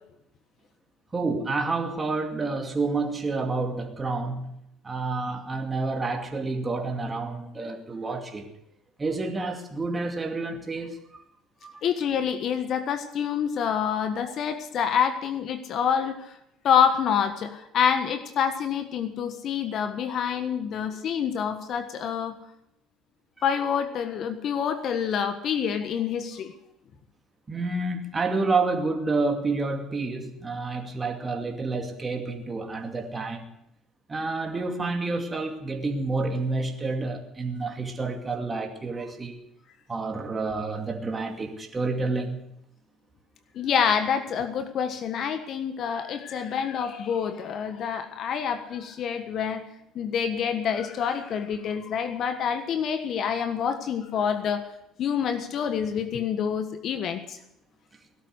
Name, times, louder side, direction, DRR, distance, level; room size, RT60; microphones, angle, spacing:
voice 1, 1.1-8.5 9.0-11.0 11.6-11.8 27.5-33.4 34.1-39.4 39.9-42.4, right 3 dB, 25° right, 2.4 m, -29 dB
voice 2, 11.8-16.3 16.6-22.3 23.4-26.5 43.5-49.6 49.9-54.7 55.0-57.4, left 7 dB, 55° left, 1.4 m, -27 dB
18.0 x 12.0 x 6.6 m
hypercardioid pair, 65°, 0 cm